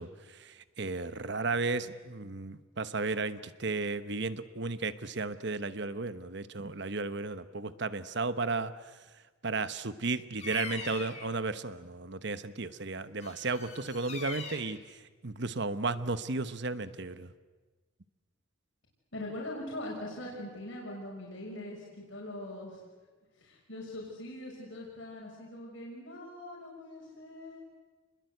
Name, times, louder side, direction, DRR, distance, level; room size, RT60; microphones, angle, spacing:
voice 1, 0.0-8.7 9.4-17.3, right 3 dB, 55° right, 13 dB, 1.1 m, -34 dB
Bird vocalization bird call bird song, 10.4-11.3 13.2-14.8, left 4 dB, 35° left, 2.9 m, -41 dB
voice 2, 19.1-22.8 23.4-27.6, left 1 dB, 65° left, -3 dB, 6.0 m, -42 dB
30.0 x 21.5 x 8.0 m, 1.3 s
head